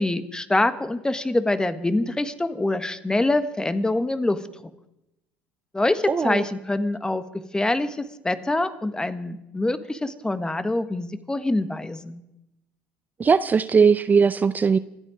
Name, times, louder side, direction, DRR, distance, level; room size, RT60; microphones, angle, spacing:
voice 1, 0.0-4.4 5.7-7.2 7.5-12.2, left 2 dB, 10° left, 11 dB, 1.3 m, -25 dB
voice 2, 6.1-6.5 13.2-14.8, right 5 dB, 30° right, 13 dB, 0.5 m, -19 dB
26.0 x 8.9 x 5.0 m, 0.88 s
hypercardioid pair, 70°, 6 cm